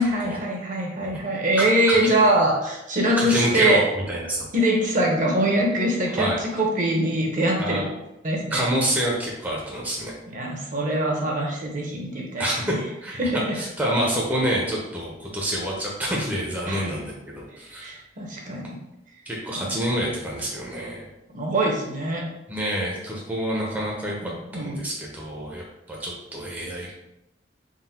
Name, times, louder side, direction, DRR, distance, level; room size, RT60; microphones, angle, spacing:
voice 1, 0.0-3.8 4.5-7.8 8.2-8.7 10.3-12.8 13.2-13.6 16.6-16.8 17.8-18.8 19.5-19.7 21.3-22.2 24.2-24.8, right 1 dB, 45° right, -1 dB, 0.8 m, -23 dB
voice 2, 1.6-2.1 3.2-4.5 6.1-6.4 7.6-7.9 8.5-10.1 12.4-17.9 19.3-21.1 22.5-26.9, equal, 10° right, -4 dB, 0.6 m, -27 dB
3.8 x 2.1 x 4.2 m, 0.90 s
head